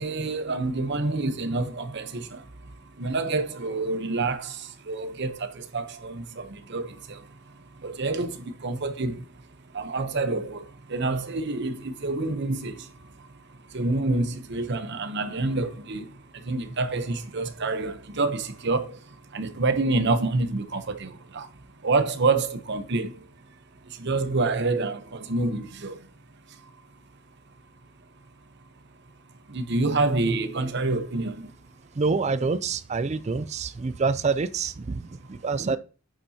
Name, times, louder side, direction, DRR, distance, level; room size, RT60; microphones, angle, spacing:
voice 1, 0.0-2.4 3.0-4.5 4.9-6.9 7.8-8.3 8.6-9.2 9.7-10.6 10.9-12.7 13.7-16.0 16.5-18.9 19.3-21.1 21.3-21.5 21.8-23.1 24.0-25.0 25.3-25.9 29.5-31.3, right 3 dB, 55° right, 0.9 m, -27 dB
voice 2, 32.0-35.8, right 4 dB, 35° right, 0.4 m, -27 dB
8.8 x 7.3 x 2.8 m
head